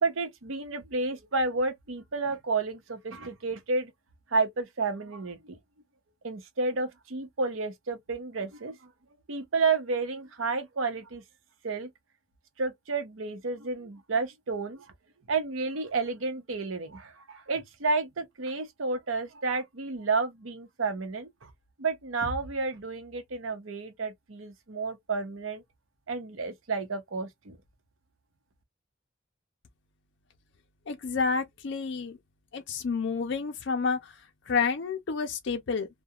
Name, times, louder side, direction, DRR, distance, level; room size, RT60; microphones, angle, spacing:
voice 1, 0.0-3.9 4.3-5.6 6.2-8.9 9.3-11.2 11.6-11.9 12.6-14.9 15.3-21.5 21.8-25.6 26.1-27.6, right 3 dB, 80° right, 0.7 m, -31 dB
voice 2, 30.9-32.2 32.5-35.9, left 5 dB, 60° left, 0.4 m, -30 dB
2.3 x 2.2 x 2.7 m
head